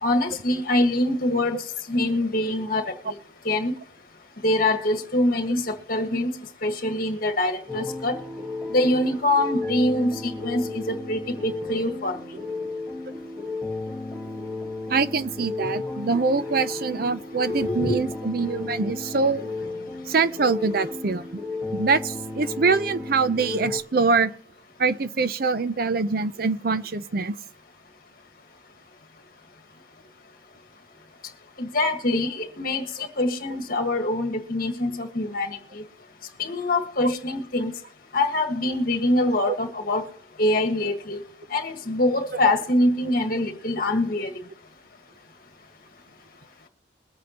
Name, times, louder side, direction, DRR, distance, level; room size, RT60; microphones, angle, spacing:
voice 1, 0.0-1.6 1.9-3.1 3.4-3.7 4.4-6.3 6.6-8.1 8.7-12.2 17.5-18.0 31.6-32.9 33.2-35.8 36.4-37.7 38.1-40.0 40.4-41.2 41.5-44.3, left 1 dB, 50° left, 1.6 m, -24 dB
sound 1, 7.7-23.8, left 3 dB, ahead, 1.4 m, -33 dB
voice 2, 14.9-19.5 20.1-21.3 21.7-24.3 24.8-27.4 33.0-33.1 39.5-39.6, right 4 dB, 50° right, 0.5 m, -24 dB
22.0 x 8.5 x 2.9 m
head